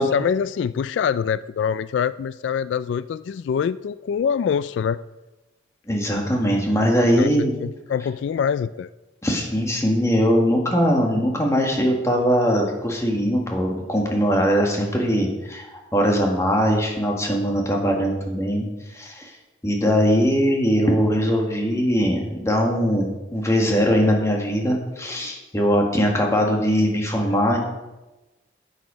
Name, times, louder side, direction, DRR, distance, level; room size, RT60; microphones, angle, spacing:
voice 1, 0.0-5.0 7.2-7.3 7.6-8.9, left 7 dB, 85° left, 17 dB, 0.3 m, -24 dB
voice 2, 5.9-7.6 9.2-18.7 18.9-19.3 19.6-27.6, equal, 15° left, 0 dB, 1.8 m, -21 dB
11.0 x 8.2 x 5.1 m, 1.1 s
head